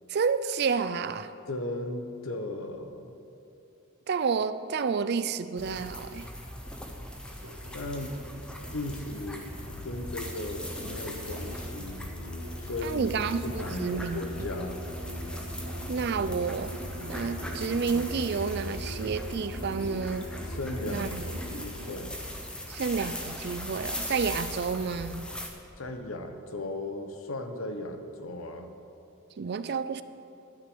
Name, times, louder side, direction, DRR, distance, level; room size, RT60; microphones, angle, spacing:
voice 1, 0.1-1.3 4.1-6.3 12.8-14.5 15.9-16.7 17.1-20.3 20.9-21.2 22.7-25.2 29.4-30.0, right 5 dB, 50° right, 13 dB, 0.4 m, -30 dB
voice 2, 1.5-3.1 7.4-8.4 8.7-9.5 9.8-12.0 12.6-13.1 13.4-14.8 20.4-22.2 25.8-28.7, left 2 dB, 70° left, 6 dB, 1.0 m, -37 dB
sound 1, 5.6-25.5, equal, 5° left, 0.8 m, -40 dB
Musical instrument, 7.4-22.0, equal, 75° right, 1.8 m, -41 dB
Rattle, 9.4-17.9, left 2 dB, 35° left, 0.4 m, -48 dB
12.0 x 6.3 x 7.8 m, 2.8 s
head